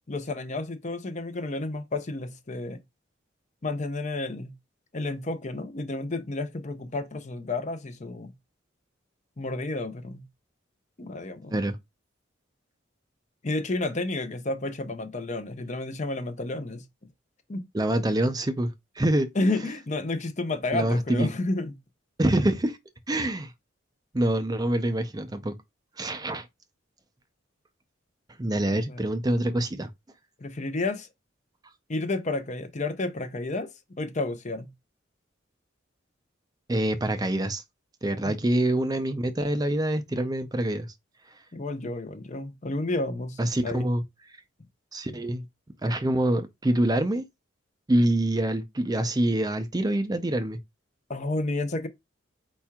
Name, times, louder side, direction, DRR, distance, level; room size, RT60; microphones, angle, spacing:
voice 1, 0.1-2.8 3.6-4.5 4.9-8.3 9.4-10.3 11.0-11.6 13.4-16.9 17.5-17.6 19.3-21.8 28.7-29.1 30.4-31.1 31.9-34.7 38.2-38.3 41.5-43.9 51.1-51.9, left 2 dB, 35° left, 0.7 m, -31 dB
voice 2, 17.7-19.3 20.7-21.3 22.2-22.8 23.1-23.5 24.1-25.6 26.0-26.5 28.4-29.9 36.7-37.6 38.0-40.9 43.4-44.0 44.9-45.5 45.8-47.3 47.9-50.6, right 1 dB, 20° right, 0.5 m, -25 dB
4.6 x 4.3 x 2.3 m
head